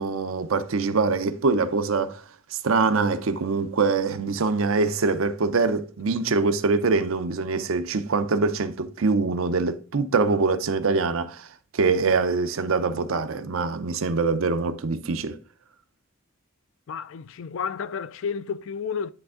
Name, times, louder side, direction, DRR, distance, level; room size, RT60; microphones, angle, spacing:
voice 1, 0.0-2.2 2.5-11.5 11.7-15.4, right 4 dB, 75° right, 0.6 m, -24 dB
voice 2, 16.9-19.1, left 6 dB, 70° left, 0.4 m, -31 dB
10.0 x 3.4 x 3.6 m
head